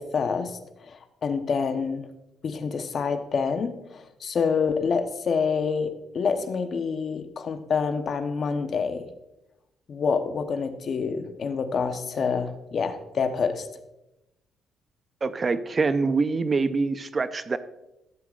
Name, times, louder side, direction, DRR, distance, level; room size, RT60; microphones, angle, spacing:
voice 1, 0.0-2.0 2.4-9.1 9.9-13.7, left 5 dB, 50° left, 7 dB, 0.9 m, -27 dB
voice 2, 15.2-17.6, right 4 dB, 35° right, 12 dB, 0.6 m, -25 dB
13.5 x 7.8 x 2.5 m, 0.92 s
cardioid pair, 90°, 0 cm